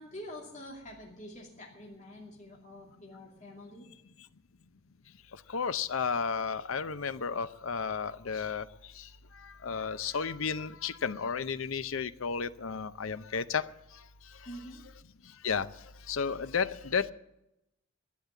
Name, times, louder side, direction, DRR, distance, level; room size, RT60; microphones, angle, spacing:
voice 1, 0.0-3.9 14.4-14.8, equal, 35° left, -2 dB, 2.7 m, -46 dB
voice 2, 5.5-8.7 9.0-9.1 9.4-13.7 15.4-15.7 16.1-17.1, left 6 dB, 80° left, 14 dB, 0.7 m, -32 dB
12.0 x 10.5 x 9.1 m, 0.86 s
head